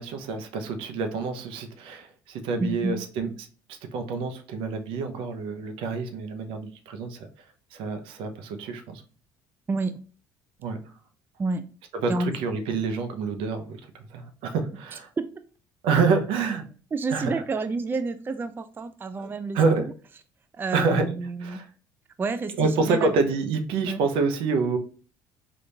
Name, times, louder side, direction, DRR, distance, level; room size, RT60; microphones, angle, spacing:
voice 1, 0.0-3.5 3.9-7.3 7.7-9.0 10.6-10.8 11.9-13.8 14.1-15.1 15.8-16.7 17.1-17.3 19.5-19.9 20.7-21.1 21.4-21.7 22.6-24.8, right 4 dB, 70° right, 6 dB, 0.6 m, -27 dB
voice 2, 2.6-3.0 9.7-9.9 11.4-11.6 12.1-12.3 15.2-15.3 16.9-19.6 20.6-21.6 22.2-23.1 23.8-24.0, right 3 dB, 25° right, 9 dB, 0.3 m, -29 dB
3.6 x 2.5 x 2.7 m, 0.39 s
hypercardioid pair, 70°, 9 cm